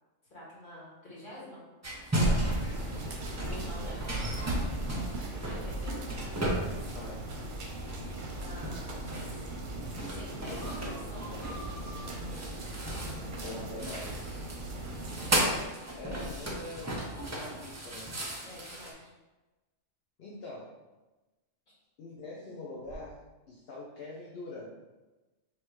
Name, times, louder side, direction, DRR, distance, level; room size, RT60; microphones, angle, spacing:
voice 1, 0.3-1.6 3.5-4.6 5.2-5.9 8.1-9.4 10.1-11.7 14.9-15.2 18.4-19.1, left 1 dB, 45° left, -8 dB, 1.9 m, -48 dB
sound 1, 1.8-7.5 7.7-18.9, right 1 dB, 25° right, 0.4 m, -35 dB
sound 2, 2.2-15.6, right 2 dB, 50° right, 0.7 m, -40 dB
sound 3, 5.5-9.0 13.5-13.6 14.5-14.6 15.9-17.2 22.8-22.9, left 1 dB, 25° left, 1.3 m, -48 dB
voice 2, 6.5-7.3 13.4-14.3 15.3-16.9 17.3-18.1 20.2-20.7 22.0-23.2 23.5-24.7, left 2 dB, 60° left, -5 dB, 0.9 m, -44 dB
3.3 x 2.8 x 4.6 m, 1.1 s
omnidirectional pair, 1.3 m